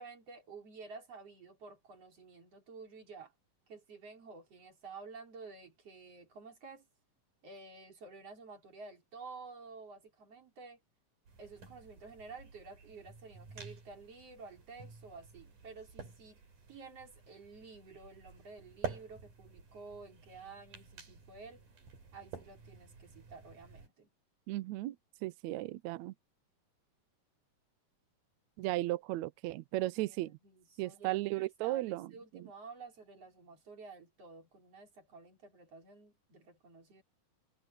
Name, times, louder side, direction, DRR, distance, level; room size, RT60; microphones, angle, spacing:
voice 1, 0.0-3.3 3.7-6.9 7.4-10.8 11.4-21.6 22.1-24.1 30.0-30.2 30.4-37.0, right 4 dB, 45° right, 5.2 m, -51 dB
sound 1, 11.3-23.9, right 5 dB, 65° right, 6.6 m, -50 dB
voice 2, 24.5-24.9 25.2-26.1 28.6-30.4 30.8-32.5, right 17 dB, 85° right, 1.6 m, -35 dB
omnidirectional pair, 4.0 m